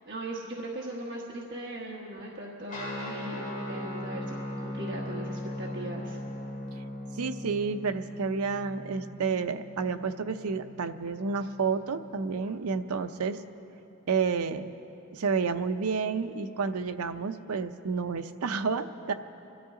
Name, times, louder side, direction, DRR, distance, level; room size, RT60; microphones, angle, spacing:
voice 1, 0.1-6.2, right 1 dB, 50° right, -4 dB, 1.4 m, -39 dB
Guitar, 2.7-12.5, left 1 dB, 35° left, 3.0 m, -39 dB
voice 2, 7.2-13.4 14.1-14.7 15.1-19.1, right 5 dB, 80° right, 9 dB, 0.6 m, -30 dB
26.5 x 13.0 x 3.8 m, 2.9 s
head